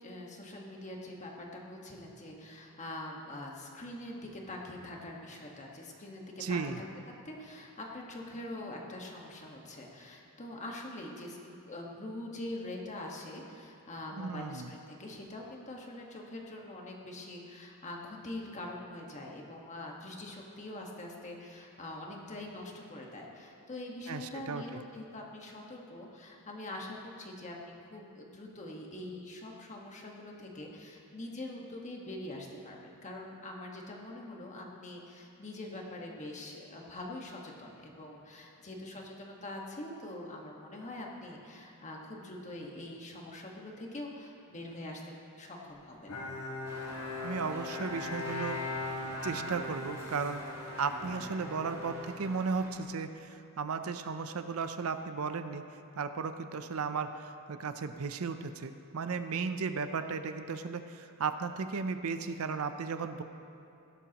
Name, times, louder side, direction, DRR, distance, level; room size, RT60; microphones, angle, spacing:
voice 1, 0.0-6.9 7.2-46.2, left 1 dB, 35° left, -1 dB, 1.5 m, -44 dB
voice 2, 6.4-6.8 14.2-14.7 24.1-24.8 47.2-48.6 49.2-50.4 50.8-55.7 56.0-63.2, right 5 dB, 70° right, 9 dB, 0.6 m, -35 dB
Bowed string instrument, 46.1-52.8, left 2 dB, 85° left, 1.7 m, -40 dB
sound 1, 46.6-52.7, right 1 dB, 15° right, 2.1 m, -48 dB
16.5 x 12.0 x 3.0 m, 2.7 s
head